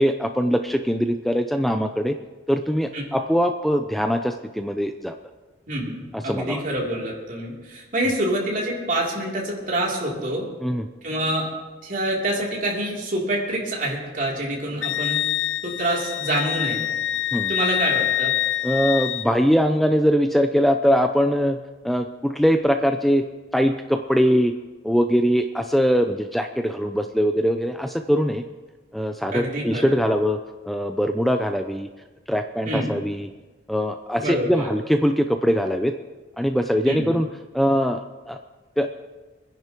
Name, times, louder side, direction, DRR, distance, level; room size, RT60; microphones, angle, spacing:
voice 1, 0.0-2.1 2.5-5.2 6.1-6.6 10.6-10.8 17.3-17.5 18.6-21.6 21.8-23.2 23.5-24.5 24.8-28.4 28.9-30.4 30.7-31.9 32.3-33.3 33.7-35.9 36.4-37.3 37.5-38.4 38.8-38.9, equal, ahead, 6 dB, 0.4 m, -22 dB
voice 2, 5.7-10.5 11.0-11.5 11.8-15.2 15.6-16.8 17.5-18.3 29.3-29.9 32.6-32.9 34.2-34.7 36.8-37.1, right 1 dB, 45° right, -3 dB, 3.1 m, -26 dB
Wind instrument woodwind instrument, 14.8-19.3, left 12 dB, 90° left, 0.4 m, -25 dB
25.5 x 10.5 x 3.0 m, 1.3 s
head